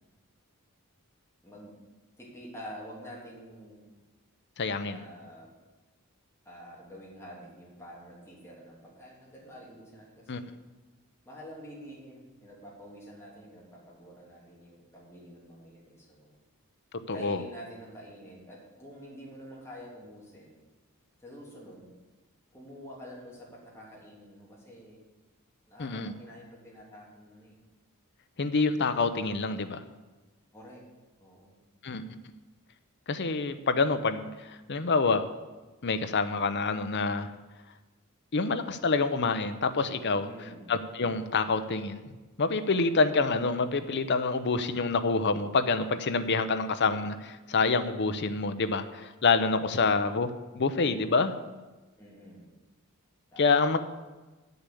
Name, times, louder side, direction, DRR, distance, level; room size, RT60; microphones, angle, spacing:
voice 1, 1.4-1.7 2.2-3.8 4.9-5.5 6.4-10.5 11.2-16.4 17.1-20.6 21.2-21.9 22.5-25.0 25.7-27.6 30.5-30.8 31.2-31.6 40.2-40.7 49.6-49.9 52.0-52.5 53.3-53.8, equal, 10° left, -4 dB, 3.0 m, -48 dB
voice 2, 4.6-5.0 10.3-10.4 16.9-17.4 25.8-26.1 28.4-29.8 31.8-32.0 33.1-35.2 35.8-37.3 38.3-40.3 40.7-42.0 42.4-50.3 50.5-51.4 53.4-53.8, left 4 dB, 50° left, 10 dB, 0.7 m, -27 dB
9.4 x 6.7 x 8.4 m, 1.2 s
head